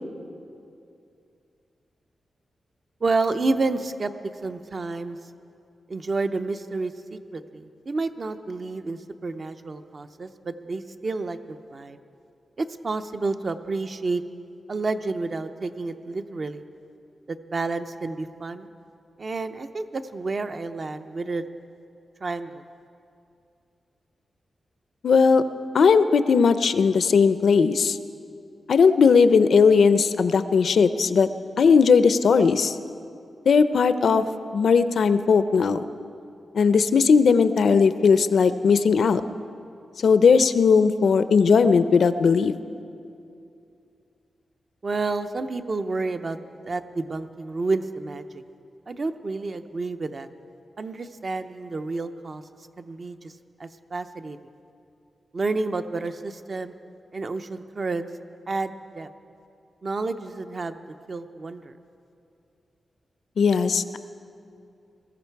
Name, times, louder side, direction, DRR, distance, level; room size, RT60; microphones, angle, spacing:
voice 1, 3.0-4.1 4.4-5.2 5.9-12.0 12.6-14.2 14.7-16.6 17.3-18.7 19.2-21.5 22.2-22.6 44.8-46.4 46.6-48.2 48.9-50.3 50.8-52.4 52.8-53.3 53.6-54.4 55.3-56.7 57.1-58.1 58.5-59.1 59.8-60.8 61.1-61.7, right 3 dB, 40° right, 8 dB, 0.7 m, -30 dB
voice 2, 25.0-25.4 25.7-28.0 28.7-31.3 31.6-32.7 33.5-34.2 34.5-35.8 36.5-39.2 40.0-42.5 63.4-64.0, left 5 dB, 70° left, 12 dB, 0.5 m, -18 dB
20.5 x 14.0 x 4.6 m, 2.6 s
wide cardioid pair, 125°, 0 cm